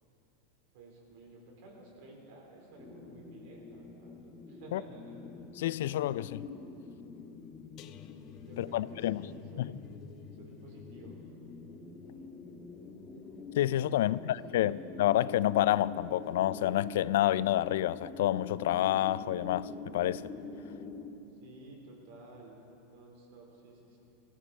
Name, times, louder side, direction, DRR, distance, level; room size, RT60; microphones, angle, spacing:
voice 1, 0.7-4.2 4.5-5.2 8.5-9.8 10.3-11.3 14.0-14.9 21.4-24.0, right 2 dB, 65° right, 4.1 m, -53 dB
sound 1, 2.8-21.1, left 4 dB, 25° left, 1.6 m, -46 dB
voice 2, 5.6-6.5 8.6-9.2 9.6-9.7 13.6-20.2, left 13 dB, 75° left, 0.3 m, -29 dB
sound 2, 7.8-14.8 15.2-15.5 15.8-16.0, left 9 dB, 45° left, 0.7 m, -53 dB
19.5 x 14.0 x 4.4 m
hypercardioid pair, 115°, 0 cm